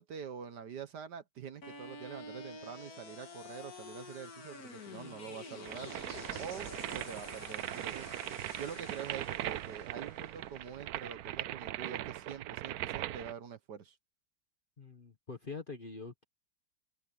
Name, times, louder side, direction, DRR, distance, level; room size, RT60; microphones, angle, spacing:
voice 1, 0.0-5.9 6.4-8.1 8.6-14.0, right 7 dB, 60° right, 1.5 m, -45 dB
sound 1, 1.6-11.7, left 3 dB, 45° left, 2.4 m, -49 dB
sound 2, 5.6-13.3, right 14 dB, 85° right, 0.8 m, -40 dB
voice 2, 14.8-16.2, left 4 dB, 30° left, 1.3 m, -44 dB
open air
omnidirectional pair, 2.2 m